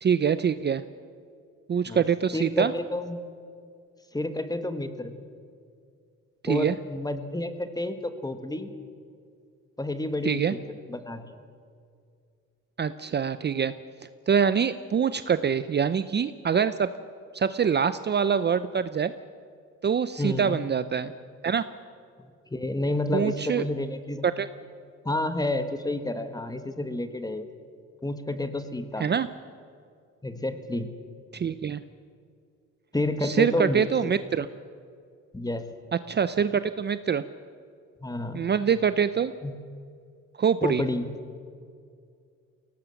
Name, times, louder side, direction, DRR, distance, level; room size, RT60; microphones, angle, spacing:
voice 1, 0.0-0.8 1.7-2.7 6.4-6.8 10.2-10.5 12.8-13.7 14.3-16.9 17.3-19.1 19.8-21.1 21.4-21.6 23.1-23.6 24.2-24.5 29.0-29.3 31.3-31.8 33.2-34.5 36.1-37.2 38.3-39.3 40.4-40.8, right 7 dB, 35° right, 13 dB, 0.6 m, -24 dB
voice 2, 2.3-3.2 4.1-5.1 6.5-8.7 9.8-10.4 10.9-11.4 20.2-20.5 22.2-24.3 25.0-27.5 28.0-29.1 30.2-30.9 32.9-34.1 35.3-35.7 38.0-38.5 39.4-39.5 40.6-41.1, left 1 dB, 10° left, 9 dB, 1.7 m, -30 dB
22.0 x 18.0 x 7.2 m, 2.2 s
cardioid pair, 90°, 30 cm